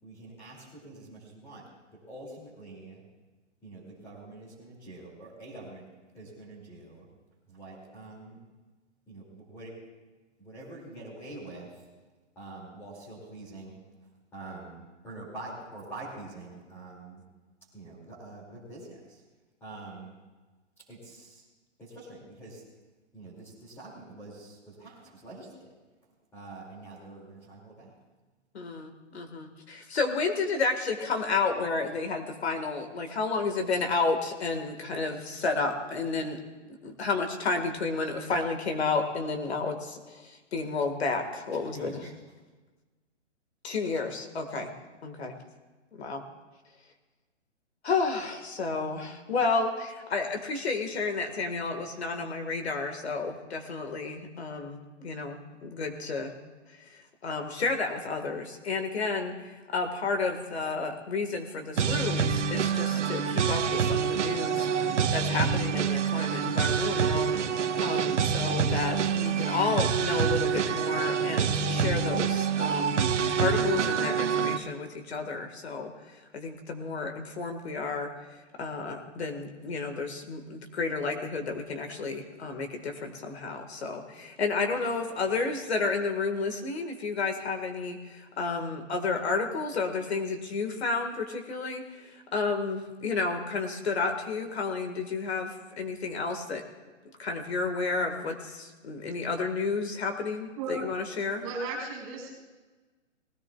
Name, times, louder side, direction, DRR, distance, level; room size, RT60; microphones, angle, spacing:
voice 1, 0.0-3.0 3.6-5.9 6.1-7.1 7.5-8.4 9.1-9.8 10.4-11.9 12.3-17.2 17.7-19.2 19.6-20.2 20.9-21.4 21.8-22.6 23.1-25.7 26.3-27.9 41.7-42.1, right 2 dB, 5° left, -8 dB, 2.4 m, -45 dB
voice 2, 28.5-36.4 36.8-42.1 43.6-44.7 45.0-45.4 45.9-46.2 47.8-56.4 56.7-73.0 73.4-96.6 97.2-101.4, left 4 dB, 60° left, 5 dB, 1.8 m, -31 dB
sound 1, 61.8-74.6, right 6 dB, 70° right, 1.2 m, -26 dB
voice 3, 101.4-102.3, right 3 dB, 25° right, 0 dB, 5.5 m, -34 dB
19.5 x 17.0 x 2.3 m, 1.3 s
hypercardioid pair, 170°, 37 cm